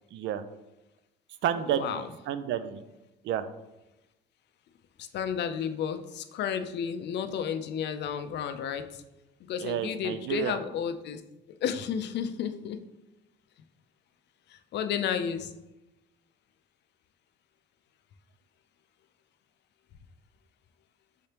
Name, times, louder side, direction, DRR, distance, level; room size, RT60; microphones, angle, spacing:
voice 1, 0.1-0.4 1.4-2.8 3.2-3.4 9.6-10.6, right 9 dB, 60° right, 12 dB, 0.4 m, -30 dB
voice 2, 1.7-2.0 5.0-9.0 9.4-11.2 11.6-12.8 14.5-15.5, left 8 dB, 55° left, 9 dB, 0.5 m, -32 dB
5.5 x 3.3 x 2.9 m, 0.97 s
cardioid pair, 110°, 21 cm